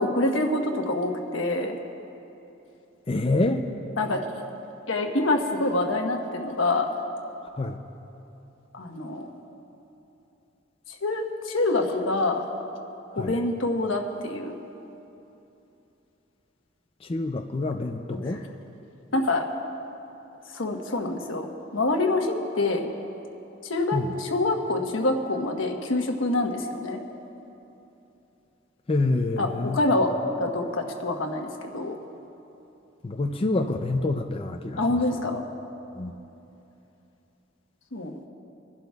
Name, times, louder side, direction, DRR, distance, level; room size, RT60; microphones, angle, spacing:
voice 1, 0.0-1.8 4.0-4.2 4.9-6.9 8.7-9.3 10.9-12.4 13.1-14.6 18.3-18.4 19.1-19.4 20.5-22.9 23.6-27.0 29.4-30.1 30.4-32.0 34.8-35.4 37.9-38.1, left 2 dB, 85° left, 2 dB, 1.2 m, -26 dB
voice 2, 3.1-3.6 7.6-7.8 13.2-13.3 17.0-18.4 23.9-24.1 28.9-29.8 33.0-35.0 35.9-36.1, left 2 dB, 30° left, 4 dB, 0.5 m, -27 dB
26.0 x 11.5 x 2.4 m, 2.9 s
head